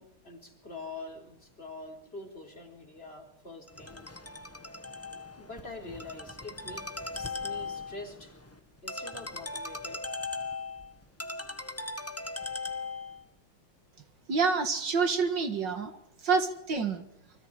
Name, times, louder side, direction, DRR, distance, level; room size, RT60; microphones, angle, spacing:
voice 1, 0.0-4.1 5.4-8.4 8.8-10.0, left 2 dB, 30° left, 3 dB, 4.4 m, -45 dB
Ringtone, 3.7-13.2, left 3 dB, 10° left, 1.3 m, -39 dB
voice 2, 14.3-17.0, right 5 dB, 65° right, 8 dB, 2.5 m, -28 dB
29.5 x 25.0 x 5.0 m, 0.76 s
omnidirectional pair, 2.2 m